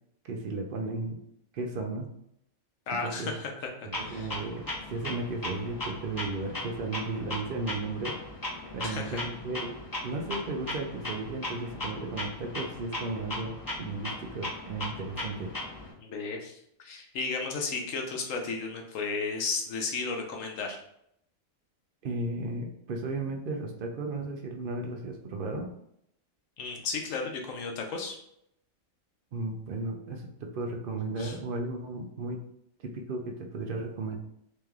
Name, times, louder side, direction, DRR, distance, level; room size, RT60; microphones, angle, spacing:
voice 1, 0.2-1.2 1.5-2.1 2.9-3.4 4.0-8.2 8.7-9.8 10.0-15.5 22.0-25.7 29.3-32.4 32.8-34.2, right 3 dB, 65° right, 3 dB, 0.5 m, -35 dB
voice 2, 2.9-3.5 4.0-4.4 8.8-9.2 16.0-20.8 26.6-28.2 31.2-31.3, left 4 dB, 70° left, 2 dB, 1.1 m, -34 dB
Clock, 3.9-15.9, left 1 dB, 20° left, 0.6 m, -38 dB
3.4 x 3.1 x 3.4 m, 0.74 s
omnidirectional pair, 1.5 m